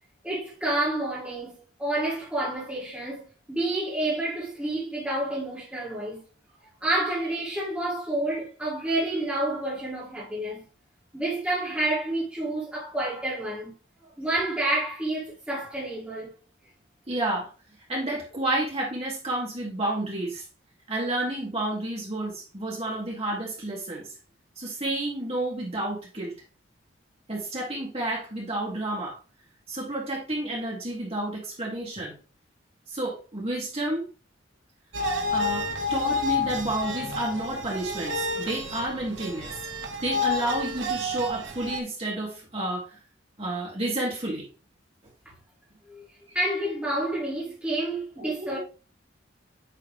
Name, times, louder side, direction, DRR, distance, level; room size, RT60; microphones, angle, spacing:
voice 1, 0.2-6.2 6.8-10.6 11.1-13.7 14.0-16.3 45.9-46.1 46.3-48.6, right 1 dB, 5° right, 2.2 m, -29 dB
voice 2, 17.1-17.5 17.9-20.4 20.9-24.1 24.6-26.3 27.3-29.2 29.7-32.1 32.9-34.0 35.3-39.5 40.0-43.0 43.4-44.5 48.2-48.6, right 1 dB, 30° right, 2.3 m, -30 dB
sound 1, 34.9-41.8, left 2 dB, 75° right, 1.1 m, -30 dB
8.7 x 3.8 x 3.4 m
head